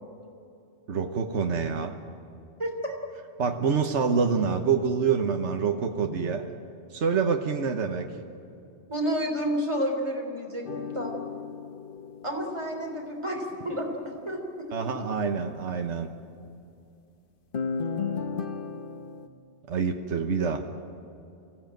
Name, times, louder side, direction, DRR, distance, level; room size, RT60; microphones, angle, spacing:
voice 1, 0.9-1.9 3.4-6.4 6.9-8.1 14.7-16.1 19.7-20.6, right 5 dB, 75° right, 4 dB, 1.4 m, -26 dB
voice 2, 2.6-2.9 8.9-11.2 12.2-13.9 14.3-14.7, equal, 25° right, 1 dB, 3.7 m, -30 dB
sound 1, 10.7-13.2 17.5-19.3, left 5 dB, 50° left, 1.0 m, -34 dB
24.0 x 16.5 x 9.1 m, 2.6 s
omnidirectional pair, 1.2 m